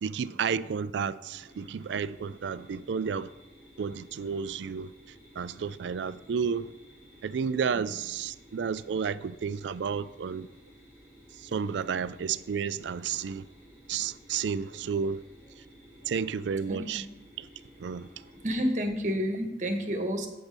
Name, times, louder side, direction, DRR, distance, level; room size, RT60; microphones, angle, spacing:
voice 1, 0.0-3.3 3.8-4.9 5.4-6.7 7.2-10.5 11.4-13.5 13.9-15.2 16.1-17.0 17.4-17.5 17.8-18.1, right 6 dB, 75° right, 0.4 m, -31 dB
sound 1, 1.3-18.6, equal, 15° left, 2.8 m, -55 dB
voice 2, 16.7-17.0 18.3-20.3, equal, 40° right, 1.2 m, -30 dB
8.5 x 6.2 x 5.2 m
head